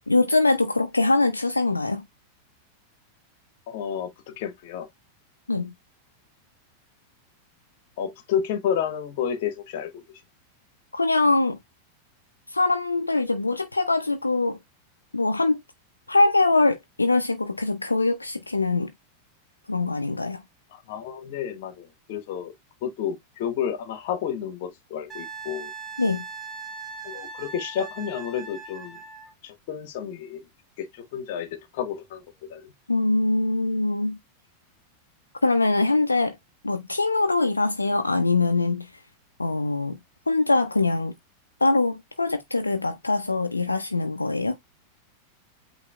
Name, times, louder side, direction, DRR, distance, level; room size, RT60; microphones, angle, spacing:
voice 1, 0.1-2.0 5.5-5.7 10.9-11.6 12.5-14.6 15.1-15.6 16.1-18.9 19.7-20.4 26.0-26.2 32.9-34.2 35.4-36.4 36.6-38.9 39.4-40.0 40.3-41.1 41.6-44.6, left 3 dB, 80° left, 0.4 m, -23 dB
voice 2, 3.7-4.9 8.0-10.0 20.7-22.5 22.8-25.7 27.0-29.0 29.4-30.5 30.8-32.7, left 8 dB, 50° left, 1.0 m, -31 dB
Wind instrument woodwind instrument, 25.1-29.3 32.0-32.1, right 5 dB, 10° right, 1.5 m, -39 dB
8.2 x 2.8 x 2.2 m
figure-of-eight pair, 90°, 0 cm